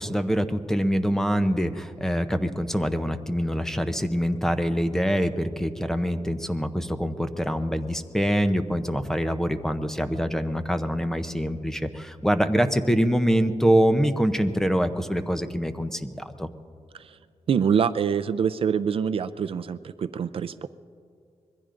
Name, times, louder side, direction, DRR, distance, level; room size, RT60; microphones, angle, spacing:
voice 1, 0.0-16.5, equal, 5° left, 9 dB, 0.6 m, -25 dB
voice 2, 17.5-20.7, right 7 dB, 55° right, 13 dB, 0.4 m, -25 dB
25.5 x 21.5 x 2.5 m, 2.3 s
wide cardioid pair, 140°, 11 cm